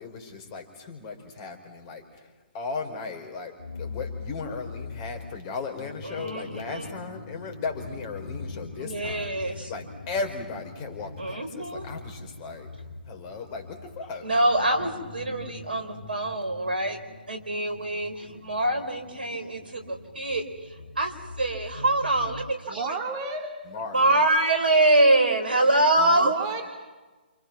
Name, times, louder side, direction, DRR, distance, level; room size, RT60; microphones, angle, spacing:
voice 1, 0.0-2.3 2.5-12.7 13.1-14.3 23.7-24.0, left 4 dB, 30° left, 4 dB, 4.6 m, -36 dB
sound 1, 3.6-22.5, left 3 dB, 75° left, 1.9 m, -42 dB
voice 2, 6.0-6.9 8.8-9.7 11.2-11.9 14.2-17.0 17.3-22.9 23.9-26.3, right 2 dB, 70° right, 6 dB, 4.6 m, -24 dB
voice 3, 22.7-23.5 26.0-26.7, right 4 dB, 30° right, 3 dB, 3.2 m, -32 dB
29.5 x 28.0 x 6.1 m, 1.2 s
figure-of-eight pair, 135°, 6 cm